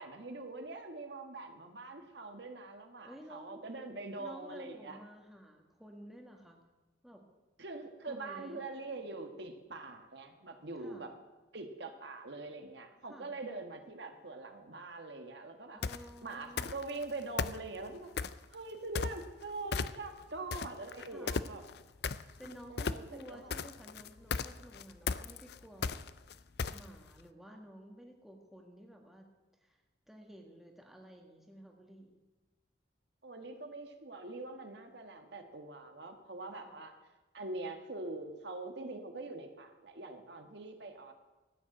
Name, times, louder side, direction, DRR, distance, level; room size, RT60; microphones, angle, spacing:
voice 1, 0.0-5.0 7.6-11.1 11.5-15.8 16.2-21.6 22.7-23.5 33.2-36.9 37.3-41.1, right 2 dB, 60° right, 5 dB, 1.5 m, -44 dB
voice 2, 3.0-3.6 4.2-6.6 7.0-7.3 8.1-8.6 10.8-11.1 13.0-13.3 15.7-16.7 21.1-21.3 22.4-26.1 26.7-29.3 29.6-29.8 30.1-32.2 36.6-36.8, equal, ahead, 1 dB, 1.6 m, -53 dB
sound 1, 15.8-16.1 16.6-17.0 17.4-18.5 19.0-19.4 19.7-20.2 20.5-27.1, left 5 dB, 55° left, 0.5 m, -35 dB
14.0 x 9.5 x 7.7 m, 1.2 s
head